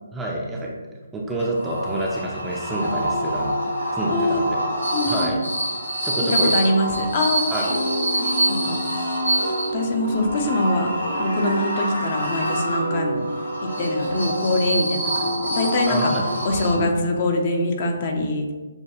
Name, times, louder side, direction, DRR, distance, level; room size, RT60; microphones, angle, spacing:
voice 1, 0.1-0.8 1.1-3.6 3.9-4.6 5.1-5.4 6.0-6.6 7.5-7.7 15.9-16.2 16.8-16.9, right 1 dB, 5° right, -3 dB, 0.5 m, -27 dB
sound 1, 1.4-17.1, right 1 dB, 80° left, 1.1 m, -26 dB
voice 2, 4.1-4.4 4.9-5.3 6.3-7.5 8.6-8.8 9.7-10.9 11.2-13.3 13.8-16.1 16.4-18.5, left 2 dB, 40° left, 3 dB, 0.7 m, -23 dB
sound 2, 7.7-14.5, right 1 dB, 85° right, 1.4 m, -30 dB
6.7 x 2.3 x 3.0 m, 1.3 s
figure-of-eight pair, 145°, 0 cm